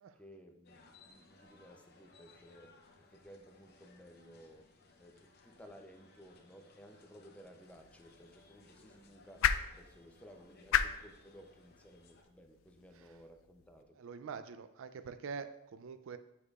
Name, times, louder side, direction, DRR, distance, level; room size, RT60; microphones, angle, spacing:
voice 1, 0.1-2.8 3.1-4.7 5.0-14.0, equal, 5° left, 4 dB, 0.5 m, -57 dB
sound 1, 0.6-12.2, left 3 dB, 50° left, 0.8 m, -63 dB
sound 2, 7.6-13.8, left 9 dB, 65° left, 0.3 m, -38 dB
voice 2, 14.0-16.2, right 5 dB, 65° right, 11 dB, 0.4 m, -44 dB
8.4 x 4.8 x 2.4 m, 0.85 s
head